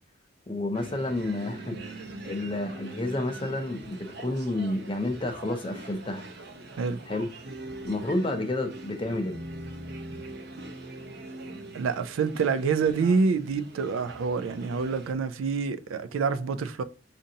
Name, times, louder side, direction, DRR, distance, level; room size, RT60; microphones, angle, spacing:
voice 1, 0.5-1.8 2.2-6.2 7.1-7.3 7.8-9.4, left 2 dB, 25° left, 0.5 m, -30 dB
sound 1, 0.7-15.1, right 2 dB, 50° right, 0.7 m, -42 dB
voice 2, 11.7-16.8, right 5 dB, 85° right, 0.4 m, -27 dB
5.2 x 2.5 x 2.7 m
head